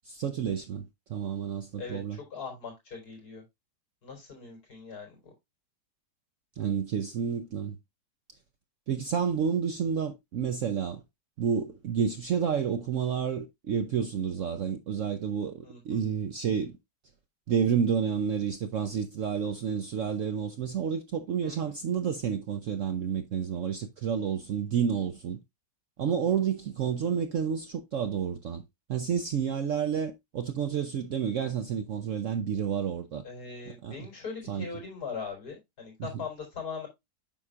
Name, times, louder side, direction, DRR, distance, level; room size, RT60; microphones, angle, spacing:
voice 1, 0.0-2.2 6.6-7.8 8.9-11.0 11.4-16.8 17.5-25.4 26.0-28.6 28.9-33.2 33.8-33.9 34.5-34.7, right 7 dB, 65° right, 0.8 m, -30 dB
voice 2, 1.8-3.4 4.0-5.3 15.6-15.8 21.4-21.6 33.2-36.9, left 5 dB, 65° left, 4.4 m, -40 dB
8.8 x 6.3 x 2.4 m
omnidirectional pair, 1.9 m